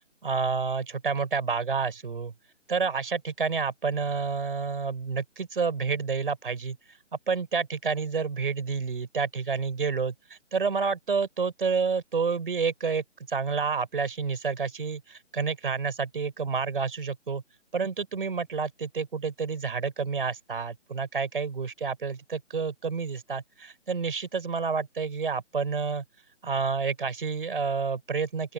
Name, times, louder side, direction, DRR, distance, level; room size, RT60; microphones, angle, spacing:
voice 1, 0.2-2.3 2.7-6.8 7.3-17.4 17.7-26.0 26.4-28.5, right 5 dB, 45° right, 4.8 m, -29 dB
open air
figure-of-eight pair, 150°, 37 cm